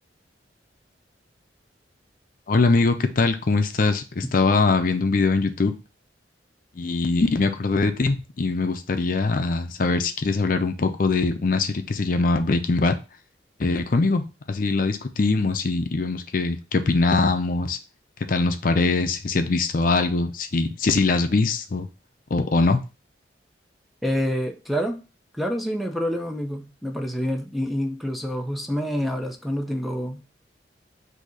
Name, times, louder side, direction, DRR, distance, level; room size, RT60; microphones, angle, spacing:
voice 1, 2.5-5.7 6.8-13.0 13.6-14.2 14.5-17.8 18.3-21.9 22.3-22.8, left 3 dB, 50° left, 7 dB, 0.5 m, -22 dB
voice 2, 24.0-25.0 25.3-30.2, equal, ahead, 3 dB, 0.5 m, -27 dB
4.0 x 2.7 x 4.7 m, 0.30 s
head